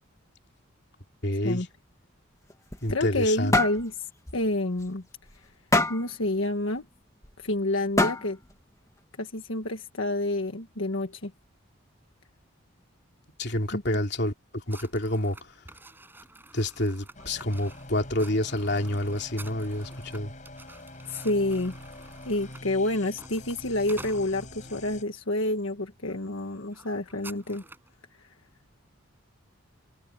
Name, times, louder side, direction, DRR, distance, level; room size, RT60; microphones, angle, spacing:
voice 1, 1.2-1.7 2.8-3.6 13.4-15.5 16.5-20.3, left 1 dB, 50° left, 3.2 m, -28 dB
sound 1, 2.5-3.3 3.5-3.8 4.3-4.4 4.8-4.9 5.7-6.1 7.2-7.3 8.0-8.4, left 2 dB, 15° left, 1.5 m, -24 dB
voice 2, 2.9-5.0 5.3-5.5 5.9-6.8 7.4-8.4 9.2-11.3 13.7-13.8 21.1-21.7 22.2-27.6 28.2-28.3, left 1 dB, 70° left, 1.5 m, -29 dB
sound 2, 14.7-24.8 25.4-25.7 26.0-26.2 26.4-27.9, right 2 dB, 10° right, 6.9 m, -50 dB
sound 3, 17.1-25.0, left 1 dB, 35° left, 6.8 m, -45 dB
head